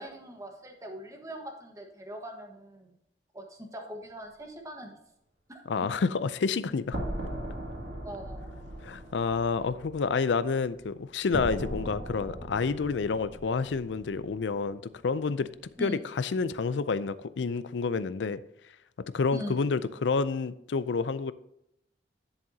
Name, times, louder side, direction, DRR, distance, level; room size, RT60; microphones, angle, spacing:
voice 1, 0.0-2.9 3.3-5.0 5.5-5.9 8.0-8.5 15.8-16.0 19.3-19.6, right 1 dB, 20° right, 1.4 m, -41 dB
voice 2, 5.7-7.0 8.8-15.5 15.8-18.4 19.1-21.3, left 4 dB, 80° left, 0.4 m, -29 dB
sound 1, 6.9-14.9, right 1 dB, 65° right, 2.4 m, -39 dB
10.5 x 7.2 x 2.8 m
head